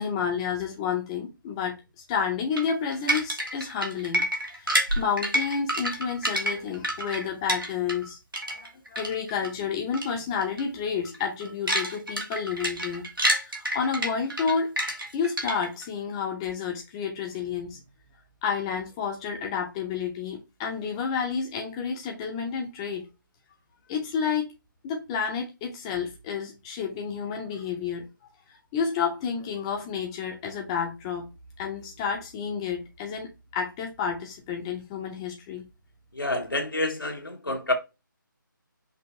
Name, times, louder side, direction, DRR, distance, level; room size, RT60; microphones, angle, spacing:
voice 1, 0.0-4.2 4.5-8.2 8.5-13.0 13.4-14.7 15.1-17.8 18.4-23.0 23.9-24.5 24.8-28.0 28.7-31.2 31.6-35.6, left 6 dB, 15° left, 0.6 m, -30 dB
sound 1, 2.6-8.1 8.3-9.5 9.9-10.1 10.4-10.6 11.0-15.8, right 1 dB, 90° right, 1.5 m, -28 dB
voice 2, 36.1-37.7, left 2 dB, 85° left, 1.3 m, -28 dB
5.4 x 2.9 x 2.8 m
figure-of-eight pair, 150°, 11 cm